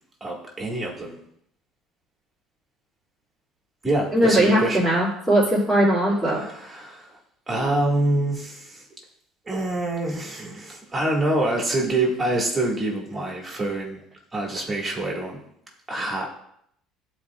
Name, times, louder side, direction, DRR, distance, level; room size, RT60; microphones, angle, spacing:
voice 1, 0.2-1.2 3.8-4.9 6.3-7.2 7.5-8.8 9.5-14.0 14.3-15.4 15.9-16.3, right 2 dB, 15° right, -2 dB, 1.9 m, -26 dB
voice 2, 4.1-6.4, right 1 dB, 5° left, -9 dB, 2.5 m, -19 dB
12.0 x 4.4 x 2.4 m, 0.71 s
cardioid pair, 115°, 0 cm